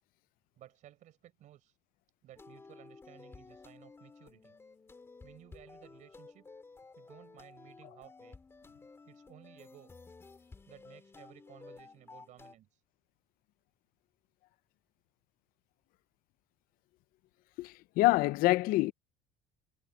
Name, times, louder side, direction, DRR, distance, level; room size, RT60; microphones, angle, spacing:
voice 1, 0.6-1.8 2.2-4.6 5.2-6.5 7.0-8.4 9.1-9.9 10.7-12.8, right 13 dB, 45° right, 5.5 m, -57 dB
sound 1, 2.4-12.6, left 4 dB, 15° left, 3.4 m, -54 dB
voice 2, 17.6-18.9, left 19 dB, 60° left, 0.6 m, -26 dB
cardioid pair, 160°, 17 cm